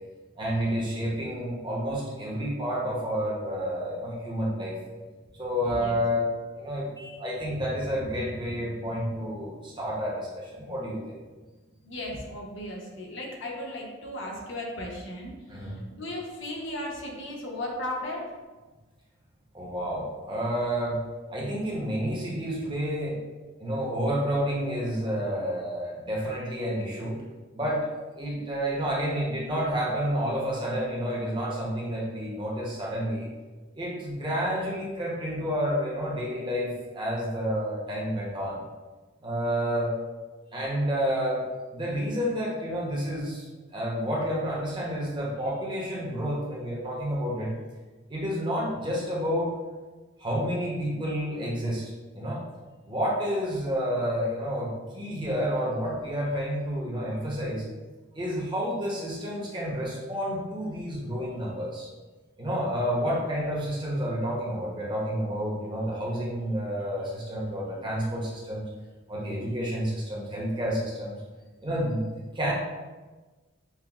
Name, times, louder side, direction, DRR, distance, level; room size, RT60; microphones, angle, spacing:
voice 1, 0.4-4.8 5.4-6.2 6.6-11.2 15.5-15.8 19.5-21.0 21.3-23.2 23.6-27.2 27.5-27.9 28.2-33.3 33.7-38.6 39.2-39.9 40.5-41.4 41.7-43.4 43.7-47.5 48.1-49.5 50.2-52.4 52.8-57.6 58.1-61.9 62.4-68.7 69.1-71.2 71.6-72.1 72.3-72.5, equal, 25° right, -4 dB, 0.7 m, -30 dB
voice 2, 11.8-18.3, left 1 dB, 70° left, -1 dB, 0.7 m, -36 dB
5.6 x 2.0 x 2.3 m, 1.3 s
head